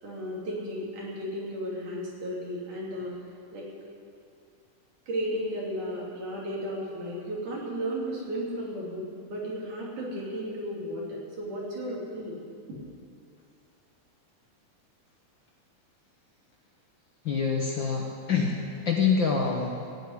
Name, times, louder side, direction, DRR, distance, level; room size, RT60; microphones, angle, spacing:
voice 1, 0.0-3.1 3.5-3.7 5.1-12.4 12.7-12.8, equal, 85° right, -4 dB, 4.7 m, -34 dB
voice 2, 17.2-18.5 18.8-19.8, left 5 dB, 55° left, 0 dB, 1.5 m, -25 dB
15.0 x 9.0 x 9.8 m, 2.4 s
omnidirectional pair, 3.5 m